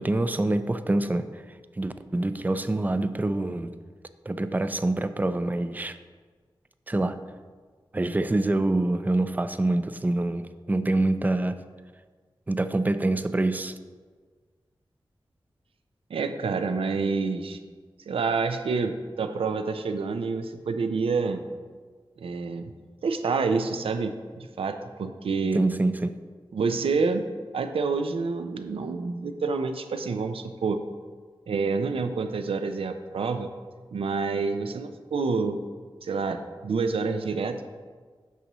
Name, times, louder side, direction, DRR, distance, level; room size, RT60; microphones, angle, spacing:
voice 1, 0.0-1.4 1.8-3.7 4.3-6.0 6.9-7.2 7.9-11.6 12.5-13.8 25.5-26.2, right 2 dB, 20° right, 11 dB, 0.4 m, -26 dB
voice 2, 16.1-17.6 18.1-21.4 22.2-22.7 23.0-25.6 26.5-27.3 27.5-30.8 31.5-33.5 33.9-35.6 36.0-37.6, right 4 dB, 90° right, 8 dB, 0.4 m, -28 dB
8.1 x 6.1 x 3.0 m, 1.5 s
cardioid pair, 55°, 9 cm